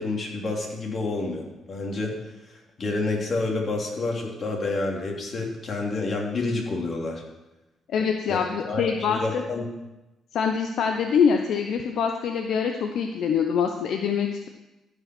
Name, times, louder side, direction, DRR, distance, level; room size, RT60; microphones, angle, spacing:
voice 1, 0.0-2.2 2.5-7.2 8.3-9.6, left 3 dB, 45° left, -1 dB, 2.9 m, -29 dB
voice 2, 7.9-9.4 10.3-14.5, left 6 dB, 70° left, 4 dB, 0.8 m, -24 dB
14.0 x 5.5 x 6.1 m, 1.0 s
cardioid pair, 90°, 0 cm